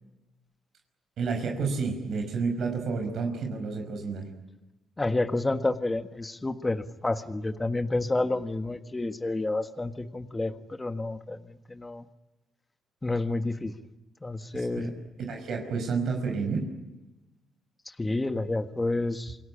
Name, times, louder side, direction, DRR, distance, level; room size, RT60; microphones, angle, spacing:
voice 1, 1.2-4.2 14.5-14.9 15.3-16.7, right 4 dB, 70° right, 4 dB, 5.3 m, -30 dB
voice 2, 5.0-12.1 13.0-13.7 14.2-14.9 17.8-19.4, left 2 dB, 20° left, 8 dB, 1.5 m, -29 dB
28.0 x 19.0 x 10.0 m, 1.1 s
cardioid pair, 90°, 0 cm